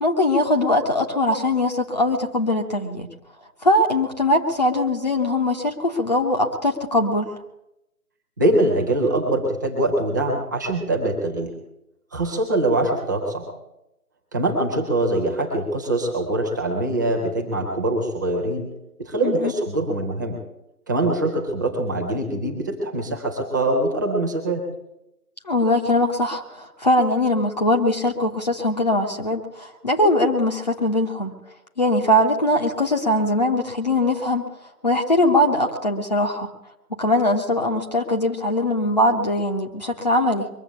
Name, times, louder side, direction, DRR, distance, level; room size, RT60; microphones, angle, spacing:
voice 1, 0.0-3.1 3.6-7.3 19.2-19.5 25.4-31.3 31.8-34.4 34.8-36.5 36.9-40.5, left 1 dB, 30° left, 1 dB, 1.1 m, -21 dB
voice 2, 8.4-11.5 12.1-13.5 14.3-18.7 19.0-20.4 20.9-24.6, right 1 dB, 10° right, -1 dB, 1.2 m, -23 dB
22.5 x 7.7 x 8.3 m, 0.88 s
figure-of-eight pair, 155°, 46 cm